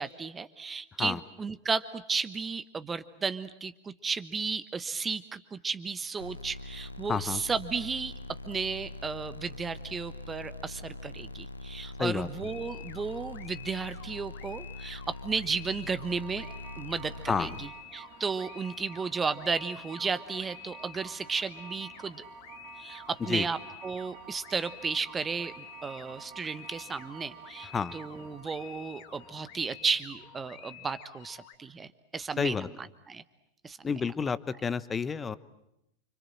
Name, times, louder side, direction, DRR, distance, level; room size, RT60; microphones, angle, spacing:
voice 1, 0.0-8.1 8.4-16.5 16.8-22.2 22.8-32.7 33.1-33.2 33.6-33.9, right 5 dB, 15° right, 13 dB, 1.2 m, -34 dB
sound 1, 6.2-17.7, left 2 dB, 80° left, 1.1 m, -43 dB
voice 2, 7.1-7.4 12.0-12.3 17.3-17.6 23.3-23.5 27.7-27.9 32.4-32.7 33.8-35.4, left 5 dB, 15° left, 16 dB, 1.1 m, -30 dB
sound 2, 12.4-31.6, left 11 dB, 50° left, 3.1 m, -50 dB
sound 3, 16.0-30.9, right 9 dB, 45° right, 2.7 m, -51 dB
29.5 x 26.5 x 7.7 m, 0.83 s
figure-of-eight pair, 90°, 0 cm